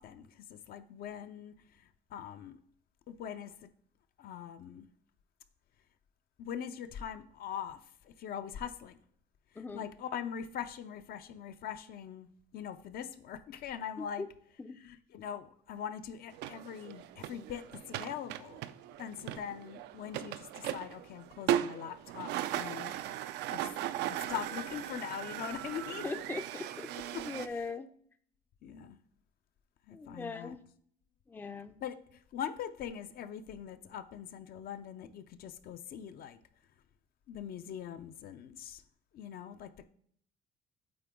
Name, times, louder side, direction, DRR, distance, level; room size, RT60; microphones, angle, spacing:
voice 1, 0.0-1.5 2.1-2.6 3.1-3.7 4.2-4.9 6.4-7.8 8.0-9.0 9.7-12.3 12.5-14.3 14.8-18.6 19.0-23.0 23.2-23.7 24.3-26.0 27.1-27.2 28.6-29.0 29.9-30.6 31.8-32.0 32.3-36.4 37.3-38.8 39.1-39.9, left 9 dB, 60° left, 10 dB, 0.5 m, -42 dB
voice 2, 9.6-9.9 14.0-14.3 14.6-14.8 17.4-17.5 26.0-26.9 27.2-27.9 29.9-30.6 31.3-31.8, left 3 dB, 10° left, 10 dB, 0.4 m, -40 dB
sound 1, 16.3-27.5, right 12 dB, 80° right, 0.4 m, -38 dB
8.7 x 3.8 x 3.6 m, 0.62 s
cardioid pair, 110°, 17 cm